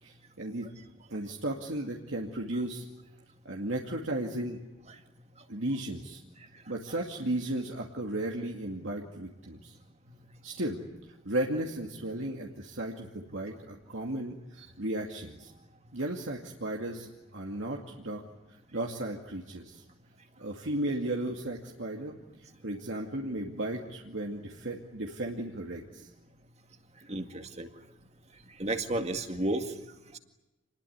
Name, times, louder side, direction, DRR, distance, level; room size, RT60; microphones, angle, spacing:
voice 1, 0.0-0.7 1.1-2.9 3.4-4.6 5.5-6.2 6.7-9.8 10.4-10.8 11.2-15.5 15.9-17.1 17.3-18.2 18.7-19.8 20.4-26.1, right 1 dB, 75° right, 0 dB, 2.3 m, -35 dB
voice 2, 27.1-27.7 28.6-29.6, right 1 dB, 35° right, 6 dB, 2.0 m, -31 dB
27.5 x 20.5 x 9.5 m, 1.0 s
head